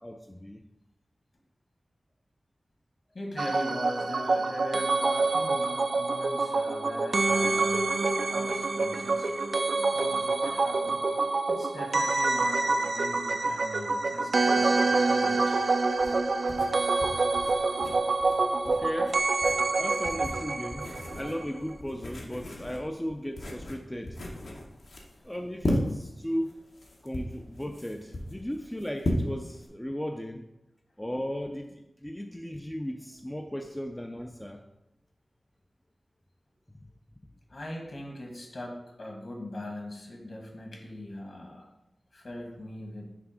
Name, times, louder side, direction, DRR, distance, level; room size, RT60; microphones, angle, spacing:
voice 1, 0.0-0.6 18.2-19.2 19.8-24.2 25.2-26.7 27.0-30.5 31.0-34.6, equal, 10° left, 4 dB, 0.4 m, -36 dB
voice 2, 3.1-9.3 9.9-11.0 11.5-15.6 25.2-25.3 37.5-41.7 42.1-43.2, left 1 dB, 60° left, 0 dB, 1.7 m, -40 dB
sound 1, 3.4-21.4 21.7-21.8, right 3 dB, 65° right, 0.4 m, -26 dB
sound 2, 15.4-29.7, left 1 dB, 75° left, 1.1 m, -36 dB
5.9 x 3.4 x 5.0 m, 0.88 s
wide cardioid pair, 95°, 0 cm